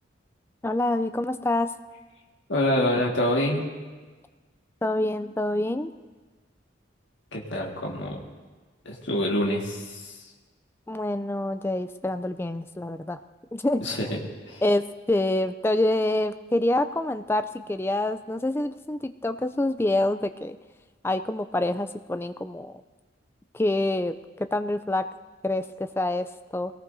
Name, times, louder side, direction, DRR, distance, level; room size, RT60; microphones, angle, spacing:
voice 1, 0.6-1.7 4.8-5.9 10.9-13.2 13.5-13.8 14.6-20.6 21.0-22.8 23.5-25.0 25.4-26.7, left 1 dB, 10° left, 10 dB, 0.3 m, -26 dB
voice 2, 2.5-3.6 7.3-8.3 8.9-10.2 13.8-14.2 14.5-14.6, left 1 dB, 70° left, -2 dB, 1.8 m, -26 dB
22.0 x 18.5 x 2.7 m, 1.4 s
head